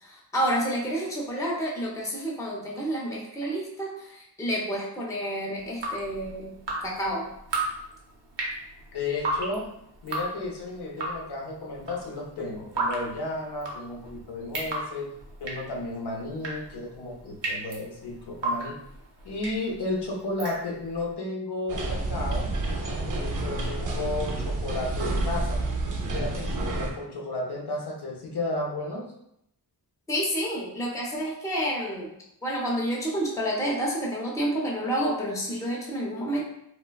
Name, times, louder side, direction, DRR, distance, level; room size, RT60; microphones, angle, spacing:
voice 1, 0.0-6.6 6.8-7.2 30.1-32.1 32.4-36.4, equal, 10° left, -3 dB, 0.5 m, -29 dB
Drip, 5.6-21.0, right 2 dB, 90° right, 0.7 m, -35 dB
voice 2, 8.9-9.7 10.0-18.8 19.2-22.6 23.0-25.6 26.1-29.1, left 2 dB, 70° left, 0 dB, 0.6 m, -33 dB
sound 1, 21.7-26.9, right 2 dB, 50° right, 0.5 m, -29 dB
3.2 x 2.1 x 2.2 m, 0.77 s
wide cardioid pair, 130°, 42 cm